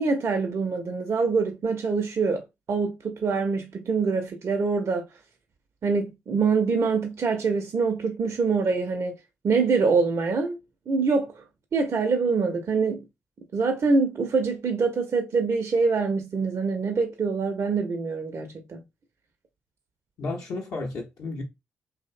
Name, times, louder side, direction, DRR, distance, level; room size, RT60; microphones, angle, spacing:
voice 1, 0.0-5.1 5.8-9.2 9.4-10.6 10.9-11.4 11.7-13.0 13.5-18.8, right 4 dB, 50° right, 0.4 m, -25 dB
voice 2, 20.2-21.4, left 3 dB, 65° left, 0.5 m, -32 dB
2.5 x 2.0 x 2.4 m
hypercardioid pair, 45°, 6 cm